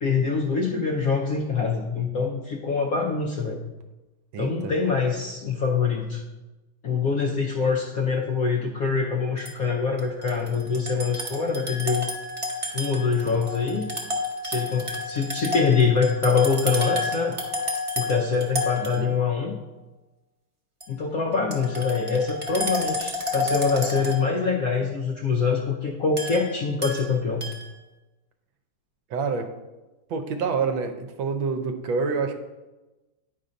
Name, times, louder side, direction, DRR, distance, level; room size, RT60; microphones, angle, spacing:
voice 1, 0.0-3.7 4.4-6.2 6.8-12.1 12.7-13.9 14.4-17.4 18.0-19.6 20.9-27.4, left 5 dB, 65° left, 0 dB, 0.9 m, -24 dB
voice 2, 4.3-4.7 18.8-19.2 29.1-29.5 30.1-32.3, right 5 dB, 75° right, 7 dB, 1.4 m, -27 dB
sound 1, 9.4-9.5 10.0-19.4 20.8-20.9 21.3-24.6 26.2-27.0 27.4-27.7, left 2 dB, 25° right, 0.6 m, -31 dB
9.5 x 4.1 x 5.1 m, 1.1 s
omnidirectional pair, 2.2 m